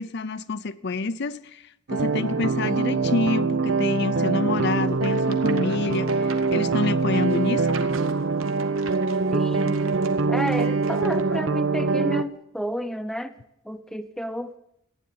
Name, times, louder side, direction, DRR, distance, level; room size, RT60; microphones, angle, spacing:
voice 1, 0.0-7.8, left 3 dB, 55° left, 0.6 m, -28 dB
sound 1, 1.9-12.2, right 4 dB, 70° right, 0.7 m, -24 dB
sound 2, 4.9-11.4, right 5 dB, 90° right, 1.5 m, -44 dB
voice 2, 9.3-9.9 10.3-13.3 13.6-14.5, equal, ahead, 0.7 m, -31 dB
15.0 x 9.9 x 9.3 m
head